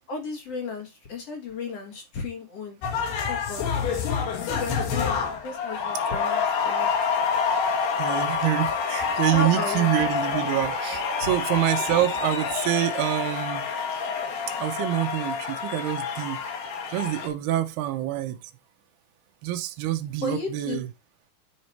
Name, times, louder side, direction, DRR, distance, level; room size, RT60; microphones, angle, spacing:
voice 1, 0.1-2.8 3.3-3.7 4.4-6.9 9.3-9.9 11.2-11.4 20.2-20.8, left 3 dB, 50° left, 2.0 m, -34 dB
sound 1, 2.8-17.3, left 6 dB, 70° left, 3.8 m, -27 dB
voice 2, 8.0-13.7 14.6-16.4 16.9-18.4 19.4-20.9, right 14 dB, 75° right, 2.8 m, -26 dB
9.7 x 5.0 x 4.4 m
omnidirectional pair, 4.8 m